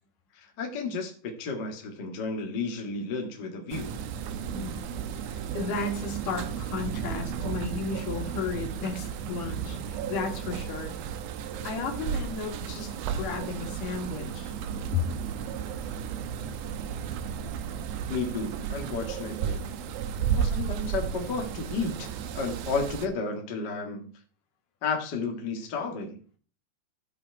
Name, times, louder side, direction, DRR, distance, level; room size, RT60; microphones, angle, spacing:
voice 1, 0.3-4.0 18.1-19.7 20.3-22.1 22.3-24.1 24.8-26.2, left 4 dB, 80° left, 2 dB, 0.9 m, -32 dB
sound 1, 3.7-23.1, right 8 dB, 70° right, 2.4 m, -34 dB
voice 2, 5.2-10.9 11.6-14.5 14.9-15.0, left 5 dB, 55° left, 3 dB, 2.9 m, -34 dB
14.5 x 5.7 x 4.7 m, 0.40 s
omnidirectional pair, 5.2 m